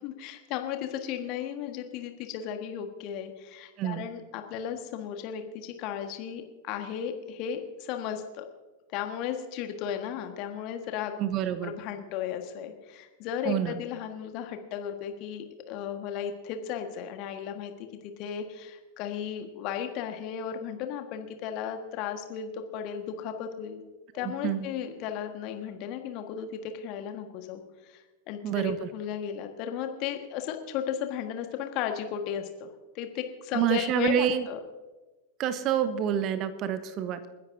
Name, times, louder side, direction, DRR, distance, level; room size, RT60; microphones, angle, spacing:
voice 1, 0.0-8.4 8.9-11.1 11.6-17.7 18.2-23.8 24.1-32.7 32.9-34.6, left 9 dB, 40° left, 6 dB, 1.6 m, -35 dB
voice 2, 11.2-11.8 13.4-13.8 24.2-24.7 28.4-28.8 33.5-34.4 35.4-37.3, right 10 dB, 35° right, 12 dB, 1.0 m, -28 dB
29.0 x 10.5 x 2.7 m, 1.2 s
figure-of-eight pair, 90°, 0 cm